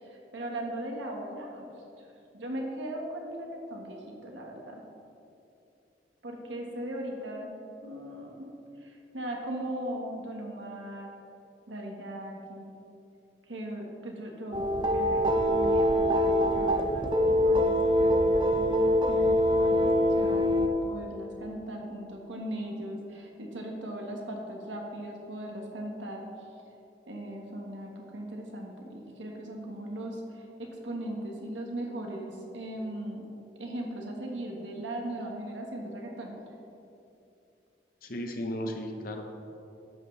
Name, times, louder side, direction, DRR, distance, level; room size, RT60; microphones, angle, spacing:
voice 1, 0.0-1.6 2.3-4.8 6.2-7.5 7.8-8.4 8.8-11.1 11.7-12.7 13.5-14.7 14.9-17.1 17.4-19.9 20.2-26.3 27.1-33.2 33.6-36.3, right 1 dB, 85° right, 0 dB, 1.5 m, -38 dB
sound 1, 14.5-20.7, equal, 25° right, 0.5 m, -24 dB
voice 2, 38.0-39.2, equal, 50° left, 3 dB, 1.0 m, -35 dB
11.0 x 8.2 x 3.3 m, 2.7 s
head